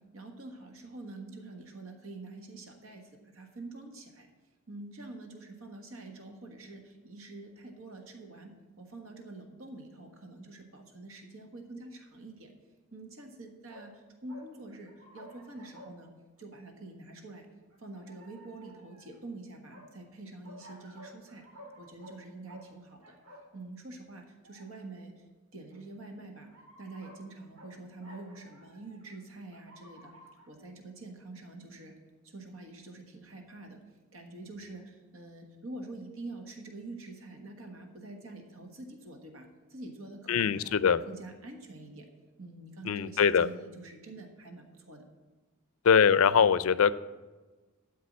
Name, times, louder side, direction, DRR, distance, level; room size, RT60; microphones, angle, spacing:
voice 1, 0.0-4.3 4.7-12.5 12.9-16.1 16.4-17.5 17.8-21.5 21.8-23.1 23.5-25.2 25.5-26.5 26.8-30.1 30.5-32.0 32.2-33.8 34.1-42.1 42.4-45.0, right 2 dB, 65° right, 3 dB, 1.4 m, -46 dB
sound 1, 13.7-13.9 14.3-15.9 16.4-16.5 17.7-19.2 19.7-19.9 20.4-22.2 22.5-22.7 23.0-23.5 24.4-24.8 25.7-25.8 26.4-27.2 27.6-27.7 28.0-29.2 29.5-30.5, equal, 85° right, 2.6 m, -53 dB
voice 2, 40.3-41.0 42.9-43.5 45.8-46.9, left 7 dB, 70° left, 17 dB, 0.4 m, -22 dB
12.5 x 4.7 x 8.4 m, 1.2 s
head